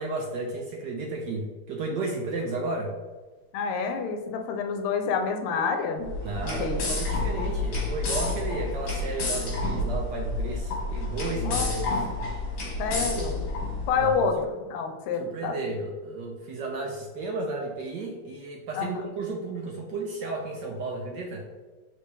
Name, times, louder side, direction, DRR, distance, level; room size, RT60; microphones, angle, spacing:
voice 1, 0.0-3.0 6.2-12.0 12.9-13.3 13.9-14.1 15.2-21.5, right 2 dB, 80° right, 0 dB, 0.9 m, -33 dB
voice 2, 3.5-6.1 6.4-6.8 11.4-12.1 12.8-13.4 13.9-14.4 14.7-15.6 18.7-19.0, left 5 dB, 85° left, 5 dB, 1.5 m, -28 dB
sound 1, 6.0-14.1, left 2 dB, 70° left, 1.7 m, -30 dB
4.0 x 3.3 x 3.2 m, 1.3 s
omnidirectional pair, 2.4 m